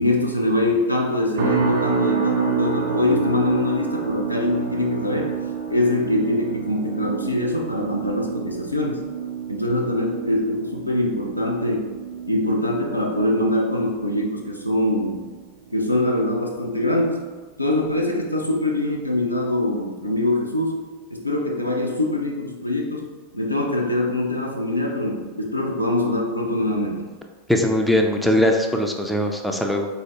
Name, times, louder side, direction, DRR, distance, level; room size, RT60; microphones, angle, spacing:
voice 1, 0.0-5.3 5.7-9.0 9.5-12.0 12.3-15.2 15.7-17.2 17.6-20.8 21.1-27.1, left 1 dB, 90° left, -1 dB, 0.5 m, -23 dB
sound 1, 1.4-16.6 16.9-17.3 17.8-18.0, right 7 dB, 55° right, 0.5 m, -29 dB
voice 2, 27.5-29.9, left 1 dB, ahead, 2 dB, 0.4 m, -20 dB
3.9 x 2.7 x 3.3 m, 1.4 s
figure-of-eight pair, 90°, 0 cm